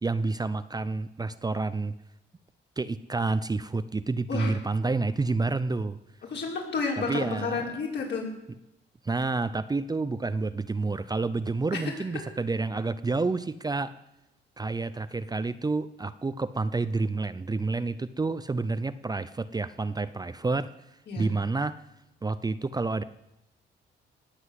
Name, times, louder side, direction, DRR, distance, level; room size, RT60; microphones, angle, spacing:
voice 1, 0.0-2.0 2.8-6.0 7.0-7.7 9.0-13.9 14.6-20.7 21.2-21.8 22.2-23.0, right 3 dB, 20° right, 12 dB, 0.6 m, -29 dB
voice 2, 6.3-8.3 11.7-11.8 21.1-21.3, left 4 dB, 60° left, -2 dB, 5.6 m, -31 dB
19.0 x 8.0 x 8.3 m, 0.87 s
cardioid pair, 90°, 20 cm